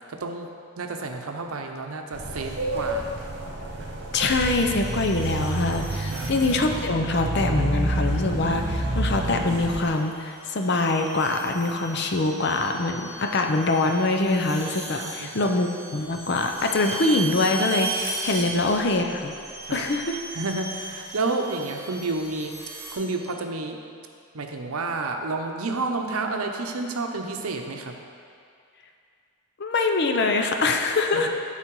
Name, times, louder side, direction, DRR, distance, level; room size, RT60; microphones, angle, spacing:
voice 1, 0.1-3.1 6.1-6.3 15.0-15.5 18.4-18.5 19.6-19.8 20.3-22.6 22.9-23.8 24.3-27.9 31.1-31.2, right 3 dB, 80° right, 4 dB, 0.7 m, -30 dB
sound 1, 2.1-9.8, right 1 dB, 50° right, 1.0 m, -29 dB
voice 2, 4.1-19.3 19.7-20.2 29.6-31.3, left 2 dB, 50° left, 4 dB, 0.6 m, -24 dB
sound 2, 4.4-6.8 8.2-8.6 9.4-23.0, right 3 dB, 15° right, 1.8 m, -37 dB
11.5 x 4.1 x 4.6 m, 2.3 s
head